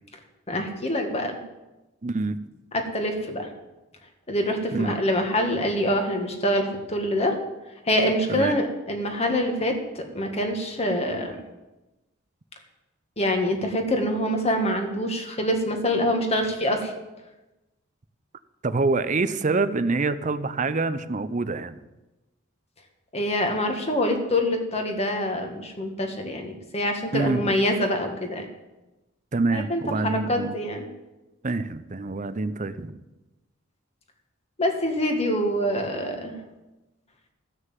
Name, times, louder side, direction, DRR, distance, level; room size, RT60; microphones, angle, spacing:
voice 1, 0.5-1.4 2.9-3.5 4.3-7.3 7.9-11.3 13.2-16.9 23.1-28.5 29.5-30.8 34.6-36.4, equal, 30° left, 3 dB, 1.8 m, -25 dB
voice 2, 2.0-2.4 4.7-5.0 8.3-8.6 18.6-21.8 27.1-27.5 29.3-30.6 31.4-33.0, right 3 dB, 40° right, 13 dB, 0.6 m, -26 dB
15.0 x 6.5 x 7.6 m, 1.0 s
head